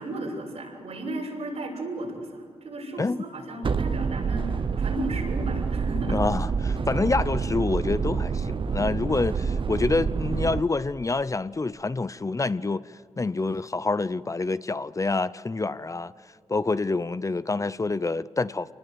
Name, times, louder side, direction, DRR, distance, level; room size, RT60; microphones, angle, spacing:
voice 1, 0.0-6.2, right 1 dB, 85° right, 6.7 m, -35 dB
sound 1, 3.6-10.6, right 5 dB, 50° right, 0.8 m, -27 dB
voice 2, 6.1-12.8 13.2-16.1 16.5-18.7, left 3 dB, 30° left, 0.7 m, -27 dB
26.5 x 20.0 x 8.0 m
cardioid pair, 60°, 11 cm